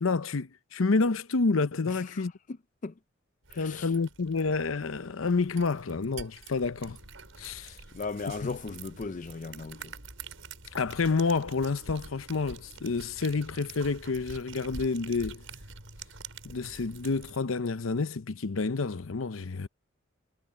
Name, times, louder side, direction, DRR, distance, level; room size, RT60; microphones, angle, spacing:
voice 1, 0.0-2.3 3.6-7.0 7.4-7.7 8.4-8.6 10.7-15.4 16.4-19.7, left 4 dB, 85° left, 0.7 m, -29 dB
voice 2, 1.9-2.6 2.8-2.9 3.5-3.9 7.6-9.9, left 4 dB, 40° left, 0.4 m, -38 dB
sound 1, 3.4-17.4, right 4 dB, 75° right, 7.0 m, -47 dB
head